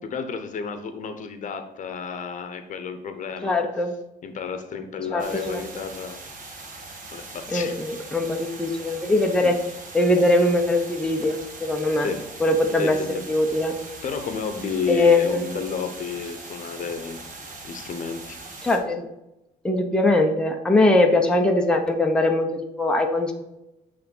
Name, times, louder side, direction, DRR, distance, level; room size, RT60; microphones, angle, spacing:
voice 1, 0.0-3.6 4.2-6.2 7.1-7.8 9.4-9.5 12.0-12.2 12.8-13.2 14.0-17.2 17.6-18.4, left 5 dB, 50° left, 8 dB, 0.9 m, -31 dB
voice 2, 3.4-4.0 5.1-5.8 7.5-9.6 9.9-12.1 12.4-13.0 13.3-13.7 14.9-15.5 18.6-19.1 19.6-23.3, left 2 dB, 5° left, 2 dB, 0.8 m, -21 dB
sound 1, 5.2-18.8, right 3 dB, 50° right, 1.6 m, -41 dB
8.4 x 3.4 x 5.5 m, 0.93 s
cardioid pair, 110°, 17 cm